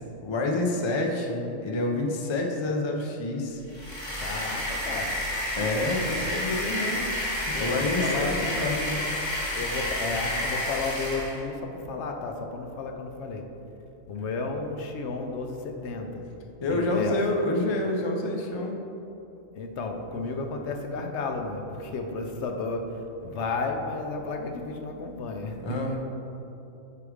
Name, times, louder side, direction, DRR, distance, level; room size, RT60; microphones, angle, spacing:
voice 1, 0.2-3.6 5.6-7.1 7.5-9.0 16.6-18.8 25.6-26.0, left 2 dB, 50° left, 1 dB, 0.3 m, -28 dB
sound 1, 3.7-11.4, left 1 dB, 25° left, 1.0 m, -30 dB
voice 2, 4.2-5.1 7.5-9.0 9.5-13.4 14.1-16.3 16.7-17.2 19.5-22.8 23.2-25.8, left 3 dB, 70° left, 4 dB, 0.8 m, -33 dB
5.0 x 4.7 x 4.8 m, 2.9 s
omnidirectional pair, 1.3 m